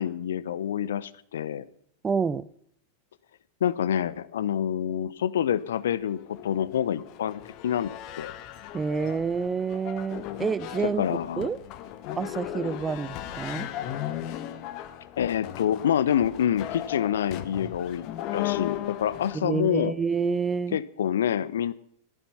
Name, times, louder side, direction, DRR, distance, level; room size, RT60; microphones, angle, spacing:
voice 1, 0.0-1.7 3.6-8.3 11.0-11.5 15.2-19.9 20.7-21.7, left 9 dB, 60° left, 0.9 m, -27 dB
voice 2, 2.0-2.5 8.7-11.0 11.4-11.6 12.2-13.7 19.3-20.8, right 5 dB, 15° right, 0.7 m, -28 dB
sound 1, 5.9-19.4, left 12 dB, 40° left, 1.4 m, -36 dB
15.5 x 14.0 x 5.7 m
figure-of-eight pair, 90°, 0 cm